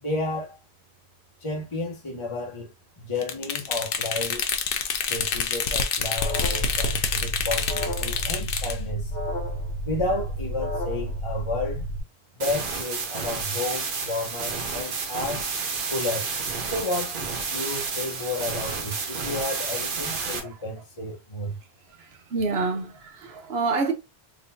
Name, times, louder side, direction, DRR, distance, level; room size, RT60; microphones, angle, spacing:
voice 1, 0.0-0.6 1.4-4.5 5.1-9.1 9.8-11.9 12.4-15.4 15.9-16.3 16.6-17.2 17.5-21.6, left 2 dB, 30° left, 0.8 m, -31 dB
sound 1, 3.2-8.8, left 6 dB, 65° left, 0.8 m, -27 dB
Alarm, 6.2-12.0, equal, 90° left, 1.4 m, -31 dB
sound 2, 12.4-20.4, right 4 dB, 60° right, 0.9 m, -30 dB
voice 2, 22.3-23.9, right 4 dB, 75° right, 1.1 m, -27 dB
3.7 x 3.0 x 2.7 m
omnidirectional pair, 1.1 m